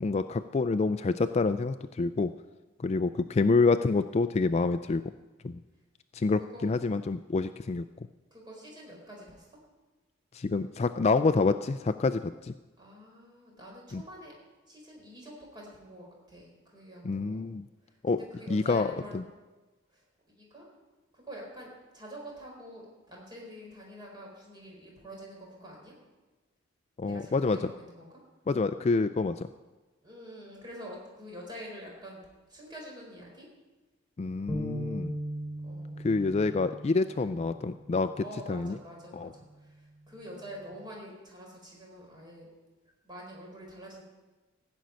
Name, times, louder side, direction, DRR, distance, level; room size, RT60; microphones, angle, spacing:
voice 1, 0.0-2.3 2.8-5.0 5.4-5.6 6.1-7.8 10.3-12.5 13.9-14.0 17.0-17.7 18.0-18.2 18.5-19.2 27.0-27.6 28.5-29.5 34.2-35.1 36.0-38.1 38.5-38.7 39.1-39.3, left 3 dB, 30° left, 11 dB, 0.3 m, -27 dB
voice 2, 8.3-9.6 12.8-14.3 14.7-17.5 17.8-19.2 19.9-20.7 21.1-25.9 27.1-28.2 30.0-32.2 32.5-33.5 35.6-36.0 38.2-42.5 43.0-44.0, equal, 20° right, -2 dB, 4.3 m, -46 dB
sound 1, 34.5-40.7, equal, 10° left, 2.6 m, -40 dB
16.0 x 6.3 x 9.3 m, 1.2 s
head